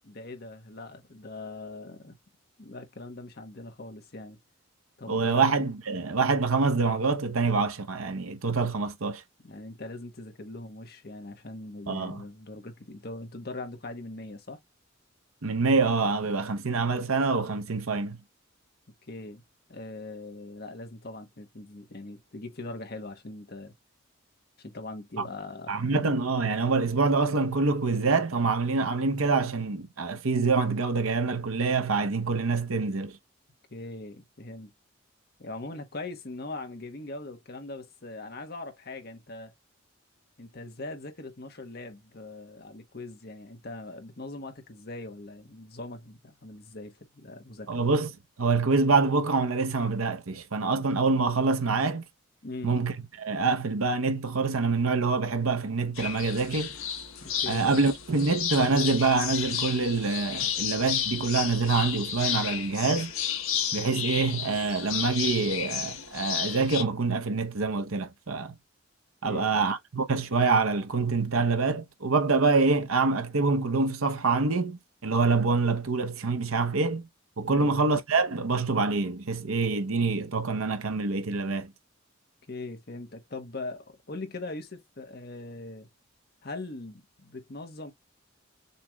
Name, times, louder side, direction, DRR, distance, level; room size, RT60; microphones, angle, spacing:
voice 1, 0.0-2.1 2.6-4.4 5.0-5.4 9.4-14.6 19.1-19.4 19.7-23.7 24.6-26.0 33.7-34.7 35.4-39.5 40.4-47.7 52.4-52.8 57.2-57.7 69.2-69.7 77.4-77.7 82.5-85.9 86.4-87.9, left 2 dB, 50° left, 1.1 m, -41 dB
voice 2, 5.1-9.2 11.9-12.2 15.4-18.2 25.7-33.2 47.7-48.1 48.4-52.0 52.6-56.7 57.5-63.1 63.7-68.5 69.2-77.1 77.4-81.7, right 4 dB, 90° right, 0.9 m, -26 dB
sound 1, 56.0-66.8, left 9 dB, 85° left, 1.2 m, -32 dB
6.8 x 3.1 x 2.3 m
head